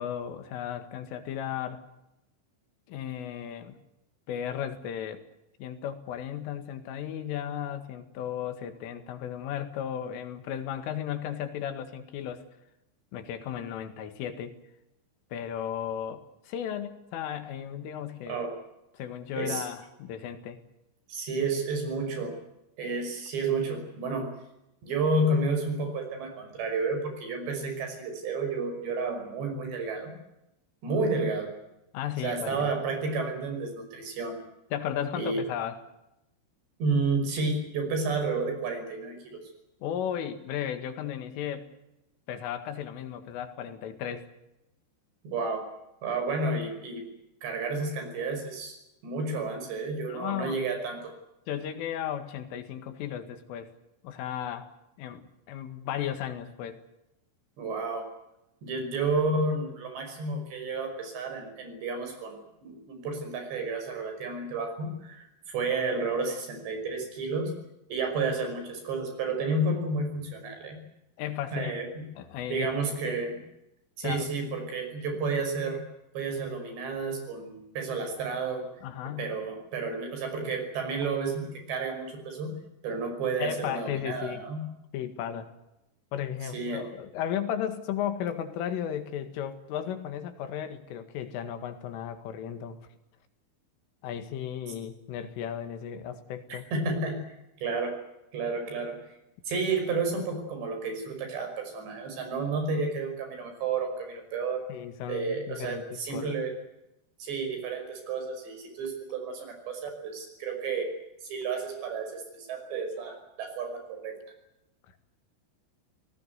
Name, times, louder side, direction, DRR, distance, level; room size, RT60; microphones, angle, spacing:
voice 1, 0.0-1.8 2.9-3.8 4.3-5.2 5.6-12.4 13.1-14.5 15.3-18.4 18.9-20.6 31.9-32.8 34.7-35.8 39.8-41.7 42.3-44.3 50.1-50.6 51.5-53.7 54.0-54.7 55.0-56.8 71.2-71.8 72.2-73.2 74.0-74.3 78.8-79.3 83.4-84.4 84.9-85.5 86.1-92.8 94.0-96.6 104.7-106.4, left 9 dB, 90° left, 9 dB, 4.5 m, -35 dB
voice 2, 21.1-22.3 22.8-24.3 24.8-30.1 30.8-31.5 32.2-34.4 35.1-35.4 36.8-39.4 45.2-45.7 46.0-47.1 47.4-48.8 49.0-51.1 57.6-58.1 58.6-67.5 67.9-70.8 71.5-72.1 72.5-73.4 74.0-75.8 76.1-78.7 79.2-82.6 82.8-84.6 86.4-86.8 96.5-97.2 97.6-98.0 98.3-99.0 99.5-104.6 105.1-106.5 107.2-110.9 111.2-114.1, right 3 dB, 60° right, 5 dB, 7.6 m, -31 dB
27.0 x 18.5 x 8.2 m, 0.89 s
omnidirectional pair, 5.6 m